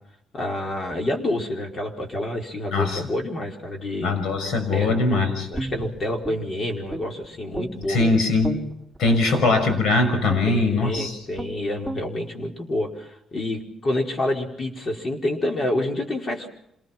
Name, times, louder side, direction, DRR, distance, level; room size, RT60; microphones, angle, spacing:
voice 1, 0.3-4.2 4.7-5.2 5.5-8.0 9.3-9.5 10.4-16.5, left 1 dB, 40° left, 1 dB, 4.9 m, -28 dB
voice 2, 2.7-3.0 4.0-5.5 7.9-8.5 9.0-11.2, left 3 dB, 75° left, 7 dB, 5.9 m, -21 dB
Guitar, 5.5-7.2 7.5-9.3 9.7-9.9 10.3-10.6 10.9-11.1 11.3-11.5 11.8-12.0, right 1 dB, 15° left, 5.6 m, -33 dB
27.0 x 19.5 x 6.0 m, 0.79 s
cardioid pair, 90°, 0 cm